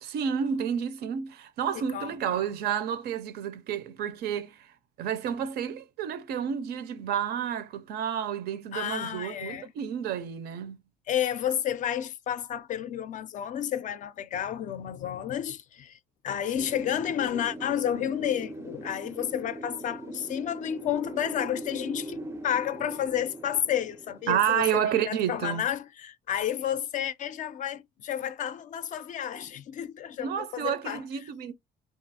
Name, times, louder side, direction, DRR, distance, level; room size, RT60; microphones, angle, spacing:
voice 1, 0.0-4.6 5.0-10.8 24.3-25.6 30.2-31.5, right 8 dB, 70° right, 0.5 m, -30 dB
voice 2, 1.7-2.4 8.7-9.7 11.1-16.0 16.2-31.3, left 10 dB, 50° left, 0.4 m, -31 dB
Wind, 16.6-25.3, right 1 dB, 15° right, 0.4 m, -41 dB
2.4 x 2.4 x 2.7 m
cardioid pair, 110°, 17 cm